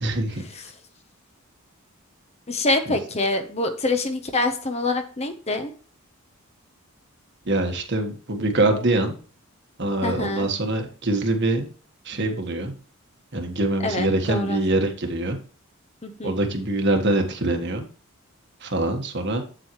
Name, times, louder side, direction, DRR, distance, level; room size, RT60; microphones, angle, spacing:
voice 1, 0.0-0.5 7.4-9.2 9.8-11.7 12.0-12.7 13.3-15.4 16.2-17.9 18.6-19.4, right 2 dB, 50° right, 4 dB, 1.5 m, -24 dB
voice 2, 2.5-5.7 10.0-10.5 13.8-14.6 16.0-16.3, left 2 dB, 30° left, 8 dB, 0.8 m, -25 dB
8.3 x 7.7 x 3.1 m, 0.40 s
head